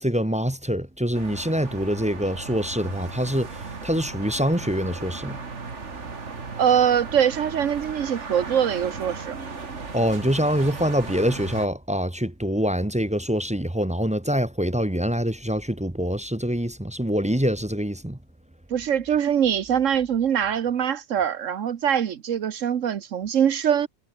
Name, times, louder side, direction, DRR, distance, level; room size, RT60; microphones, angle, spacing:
voice 1, 0.0-5.4 9.9-18.2, equal, 5° right, 0.9 m, -25 dB
sound 1, 1.1-11.7, right 4 dB, 65° right, 2.6 m, -36 dB
voice 2, 6.6-9.4 18.7-23.9, right 8 dB, 85° right, 1.3 m, -23 dB
omnidirectional pair, 1.3 m